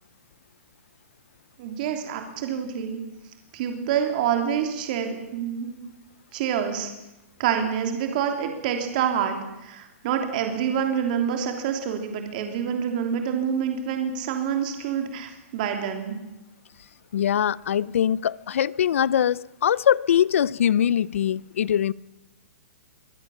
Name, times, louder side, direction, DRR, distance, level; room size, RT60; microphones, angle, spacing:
voice 1, 1.6-3.0 3.5-5.8 6.3-6.9 7.4-16.2, right 8 dB, 35° right, 4 dB, 3.1 m, -27 dB
voice 2, 17.1-21.9, left 9 dB, 65° left, 22 dB, 0.6 m, -22 dB
24.0 x 16.5 x 7.2 m, 0.96 s
hypercardioid pair, 170°, 8 cm